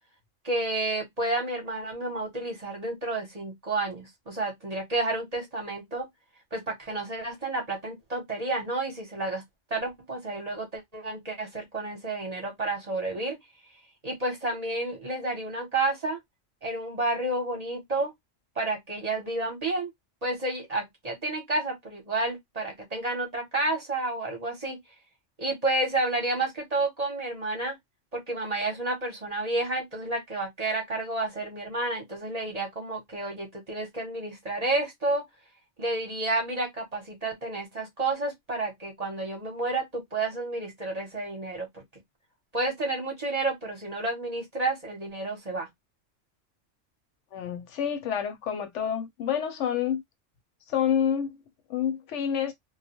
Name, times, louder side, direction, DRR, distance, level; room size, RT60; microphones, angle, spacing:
voice 1, 0.4-6.1 6.5-9.4 9.7-13.4 14.0-16.2 16.6-18.1 18.6-19.9 20.2-24.8 25.4-27.8 28.1-35.2 35.8-41.8 42.5-45.7, right 2 dB, 35° right, 0.8 m, -30 dB
voice 2, 47.3-50.0 50.7-51.4 51.7-52.5, left 8 dB, 75° left, 0.9 m, -28 dB
2.2 x 2.1 x 2.7 m
omnidirectional pair, 1.3 m